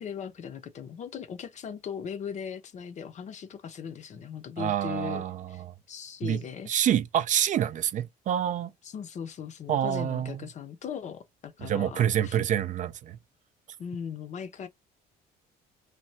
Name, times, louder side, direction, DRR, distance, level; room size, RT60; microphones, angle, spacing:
voice 1, 0.0-5.6 5.9-6.7 8.8-12.4 13.8-14.7, left 7 dB, 45° left, 0.6 m, -39 dB
voice 2, 4.6-5.7 6.2-6.4 6.7-8.7 9.7-10.4 11.6-13.2, right 10 dB, 50° right, 0.4 m, -27 dB
3.2 x 2.2 x 2.7 m
cardioid pair, 110°, 17 cm